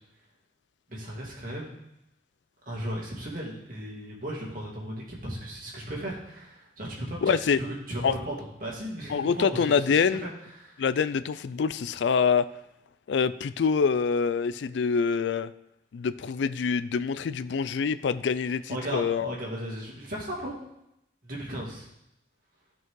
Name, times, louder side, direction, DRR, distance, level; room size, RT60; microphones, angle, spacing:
voice 1, 0.9-1.7 2.7-10.3 10.6-10.8 18.7-20.6 21.2-21.9, right 1 dB, 45° right, -3 dB, 2.4 m, -36 dB
voice 2, 7.2-7.6 8.0-8.1 9.1-10.3 10.8-12.5 13.1-15.5 15.9-19.3, left 6 dB, 70° left, 14 dB, 0.4 m, -25 dB
12.0 x 5.3 x 3.8 m, 0.83 s
head